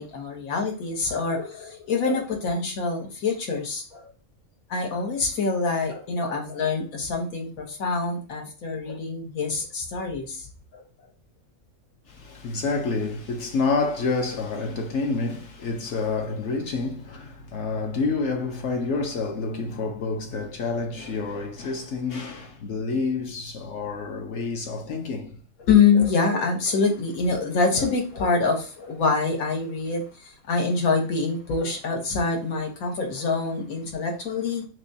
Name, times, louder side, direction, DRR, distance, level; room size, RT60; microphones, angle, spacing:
voice 1, 0.0-4.1 4.7-10.5 10.7-10.8 25.7-34.7, left 4 dB, 85° left, 1.5 m, -25 dB
voice 2, 12.1-25.4 25.7-25.8, left 4 dB, 60° left, 1.0 m, -28 dB
6.0 x 2.3 x 2.7 m
omnidirectional pair, 1.4 m